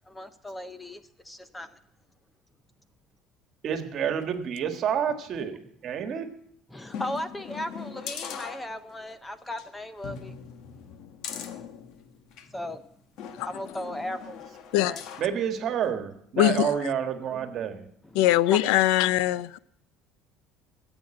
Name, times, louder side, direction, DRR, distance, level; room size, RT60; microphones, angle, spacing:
voice 1, 0.1-1.8 5.4-5.5 6.7-10.4 12.5-12.8 13.4-14.4 14.8-15.0 18.0-18.6, left 1 dB, 10° left, 0.6 m, -37 dB
voice 2, 3.6-6.3 15.2-17.8, right 8 dB, 40° right, 1.6 m, -29 dB
sound 1, 6.9-9.1 9.5-9.7 10.0-12.5 13.2-15.4 15.8-15.9, left 7 dB, 55° left, 1.2 m, -40 dB
voice 3, 16.4-16.7 18.1-19.6, left 14 dB, 90° left, 0.5 m, -21 dB
14.5 x 8.0 x 7.7 m
cardioid pair, 155°, 0 cm